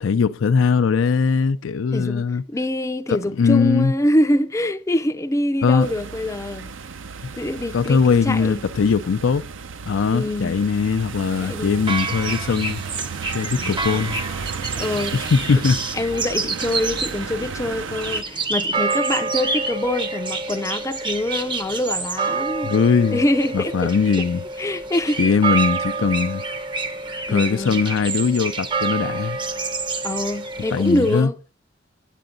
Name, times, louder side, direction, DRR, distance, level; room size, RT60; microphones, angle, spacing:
voice 1, 0.0-2.4 3.1-3.9 5.6-5.9 7.7-9.5 9.9-12.8 13.3-14.2 15.1-15.8 22.6-23.2 23.5-24.4 25.2-26.4 27.3-29.4 30.7-31.3, left 5 dB, 70° left, 0.4 m, -20 dB
voice 2, 1.9-6.7 7.3-8.6 10.1-10.6 11.4-11.7 13.9-14.1 14.7-15.1 15.9-22.7 23.1-23.9 24.6-25.3 27.3-27.8 30.0-31.3, left 1 dB, 15° left, 0.5 m, -24 dB
sound 1, 5.8-18.2, right 5 dB, 65° right, 0.6 m, -33 dB
sound 2, 11.8-31.2, right 3 dB, 25° right, 0.7 m, -28 dB
9.1 x 8.6 x 3.8 m
head